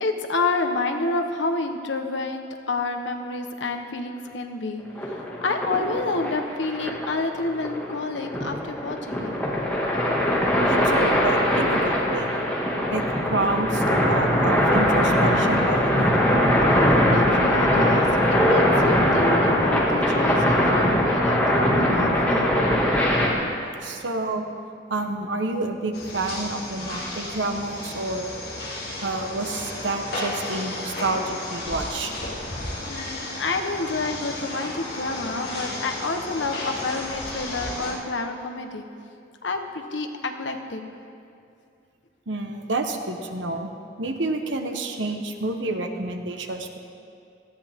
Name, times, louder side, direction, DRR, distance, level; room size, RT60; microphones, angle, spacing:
voice 1, 0.0-4.8 5.4-9.3 16.7-22.5 32.9-38.9 39.4-40.8, left 3 dB, 85° left, 5 dB, 1.1 m, -29 dB
sound 1, 5.0-23.3, equal, 10° left, 2.0 m, -21 dB
voice 2, 10.6-12.3 12.9-13.0 13.3-16.1 23.8-24.5 24.9-28.3 29.0-32.1 42.3-43.7 44.0-46.8, right 2 dB, 85° right, 5 dB, 1.2 m, -29 dB
sound 2, 25.9-37.9, left 1 dB, 55° left, 2.9 m, -33 dB
18.0 x 14.0 x 3.6 m, 2.4 s
head